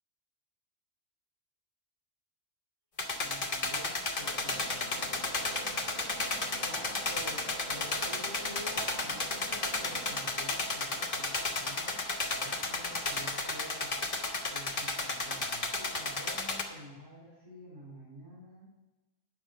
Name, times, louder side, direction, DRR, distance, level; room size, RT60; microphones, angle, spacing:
sound 1, 3.0-16.6, left 3 dB, 45° left, 1.4 m, -33 dB
voice 1, 3.2-5.8 6.4-12.0 12.3-14.0 14.5-18.7, equal, 15° right, -7 dB, 3.6 m, -49 dB
sound 2, 4.2-10.9, right 2 dB, 70° right, 2.0 m, -47 dB
9.9 x 6.1 x 7.6 m, 1.1 s
omnidirectional pair, 1.3 m